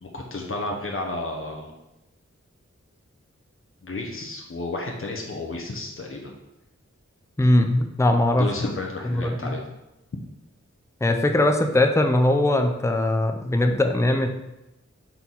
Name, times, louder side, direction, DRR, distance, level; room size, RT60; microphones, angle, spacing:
voice 1, 0.0-1.7 3.8-6.3 8.3-9.6, left 2 dB, 45° left, 0 dB, 0.9 m, -32 dB
voice 2, 7.4-8.5 9.1-9.5 11.0-14.3, left 1 dB, 10° left, 5 dB, 0.5 m, -20 dB
4.5 x 4.0 x 5.5 m, 0.92 s
wide cardioid pair, 50°, 29 cm